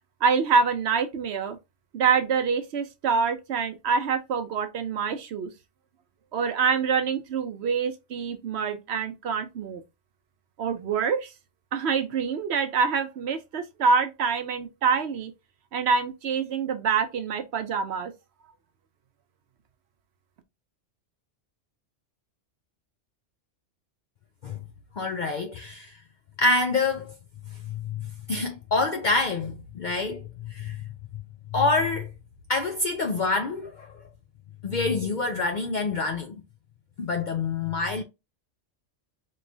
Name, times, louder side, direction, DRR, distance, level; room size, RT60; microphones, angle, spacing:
voice 1, 0.2-1.6 1.9-5.5 6.3-9.8 10.6-11.3 11.7-15.3 15.7-18.1, right 5 dB, 65° right, 0.9 m, -26 dB
voice 2, 24.9-26.0 26.4-27.2 27.5-30.8 31.5-32.1 32.5-34.0 34.6-36.4 37.0-38.0, left 3 dB, 55° left, 0.5 m, -27 dB
4.6 x 3.0 x 2.6 m
omnidirectional pair, 1.3 m